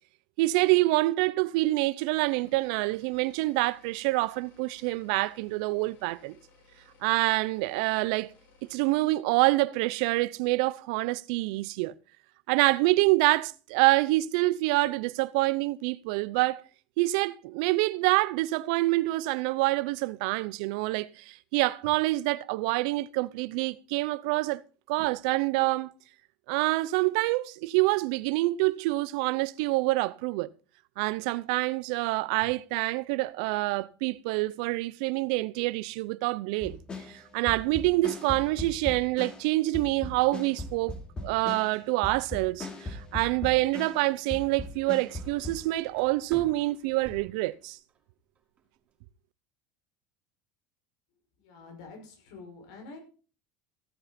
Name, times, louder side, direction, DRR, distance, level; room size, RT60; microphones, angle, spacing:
voice 1, 0.4-6.4 7.0-8.3 8.7-11.9 12.5-16.6 17.0-24.6 24.9-25.9 26.5-30.5 31.0-36.8 37.1-40.9 41.2-47.8, right 20 dB, 75° right, 0.6 m, -26 dB
sound 1, 2.1-8.9, left 3 dB, 55° left, 7.6 m, -61 dB
sound 2, 36.6-39.5 39.7-44.0 44.3-45.6, left 2 dB, 20° left, 2.9 m, -38 dB
sound 3, 43.9-48.0 48.4-48.9, right 5 dB, 30° right, 4.1 m, -50 dB
voice 2, 51.4-53.0, left 3 dB, 80° left, 5.9 m, -47 dB
15.5 x 8.9 x 4.3 m
supercardioid pair, 120°, 4 cm